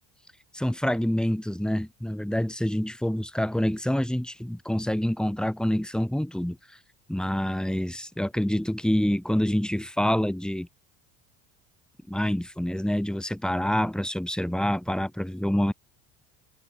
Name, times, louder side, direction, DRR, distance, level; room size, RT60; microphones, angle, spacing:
voice 1, 0.5-6.8 7.1-10.7 12.1-15.7, equal, ahead, 7.9 m, -27 dB
open air
supercardioid pair, 85°, 35 cm